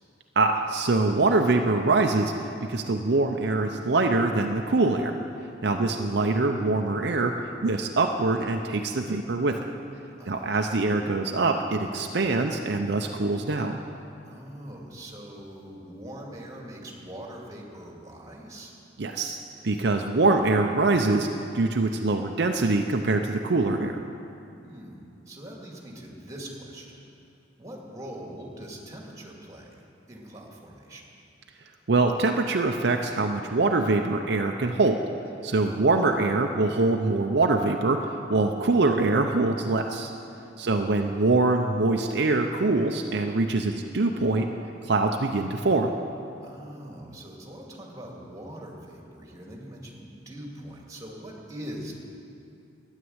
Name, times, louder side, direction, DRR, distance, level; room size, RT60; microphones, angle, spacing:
voice 1, 0.4-2.3 2.7-5.1 5.6-7.3 7.6-9.6 10.3-13.8 19.0-19.4 19.6-21.3 21.5-23.9 31.9-35.0 35.4-38.0 38.3-40.1 40.6-44.5 44.8-45.9, right 3 dB, 65° right, 3 dB, 0.7 m, -24 dB
voice 2, 10.2-10.5 14.2-18.7 24.6-27.1 27.6-29.8 30.1-31.1 35.6-35.9 40.6-41.2 46.4-51.9, right 1 dB, 20° right, -1 dB, 2.3 m, -42 dB
13.0 x 10.0 x 8.0 m, 2.7 s
head